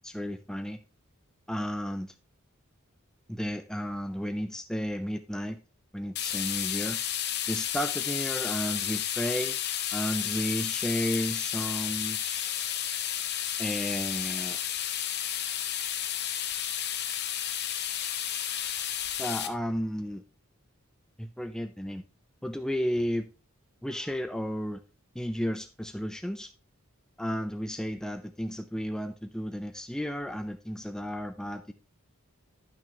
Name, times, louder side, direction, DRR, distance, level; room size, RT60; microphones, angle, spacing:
voice 1, 0.0-0.8 1.5-2.1 3.3-5.6 5.9-7.0 7.5-9.6 9.9-12.4 13.6-14.6 19.2-20.2 21.2-22.0 22.4-23.3 23.8-24.8 25.1-26.5 27.2-31.7, equal, 5° left, 8 dB, 0.4 m, -33 dB
sound 1, 6.2-19.5, left 10 dB, 50° left, 0.9 m, -32 dB
10.5 x 6.0 x 3.2 m, 0.32 s
head